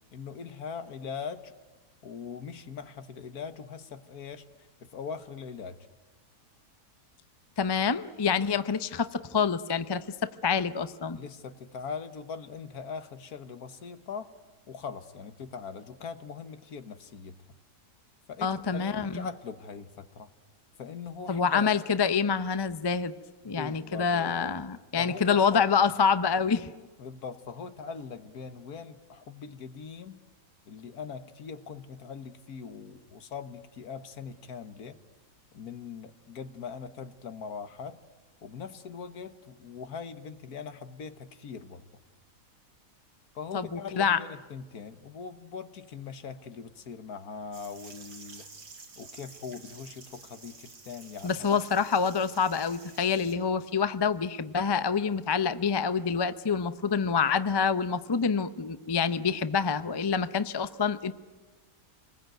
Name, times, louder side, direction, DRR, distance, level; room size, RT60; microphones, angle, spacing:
voice 1, 0.1-1.5 2.0-4.5 4.8-5.8 11.1-14.3 14.7-17.4 18.3-20.3 20.8-21.7 23.4-24.6 25.0-25.7 27.0-30.2 30.7-35.0 35.5-38.0 38.4-41.8 43.4-48.5 49.0-51.4, left 6 dB, 65° left, 11 dB, 1.7 m, -41 dB
voice 2, 7.6-11.2 18.4-19.3 21.3-23.1 23.4-26.7 43.5-44.2 51.2-61.1, left 6 dB, 30° left, 12 dB, 0.4 m, -27 dB
sound 1, 47.5-53.4, right 3 dB, 80° right, 3.4 m, -50 dB
27.0 x 21.0 x 9.2 m, 1.3 s
omnidirectional pair, 1.7 m